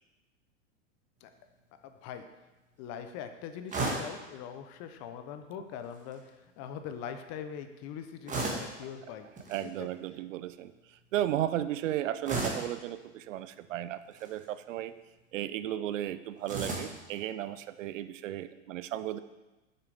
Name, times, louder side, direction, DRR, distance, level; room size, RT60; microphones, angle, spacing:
voice 1, 1.8-2.3 2.8-9.3 9.8-9.9, left 8 dB, 40° left, 8 dB, 0.8 m, -42 dB
sound 1, 3.7-4.2 5.8-6.2 8.3-8.8 9.4-9.6 12.2-12.7 14.0-14.4 16.4-17.0, right 2 dB, 20° right, 1.6 m, -34 dB
voice 2, 9.5-10.7 11.1-14.9 15.3-19.2, right 12 dB, 75° right, 14 dB, 0.5 m, -34 dB
6.8 x 6.7 x 3.5 m, 1.1 s
hypercardioid pair, 105°, 38 cm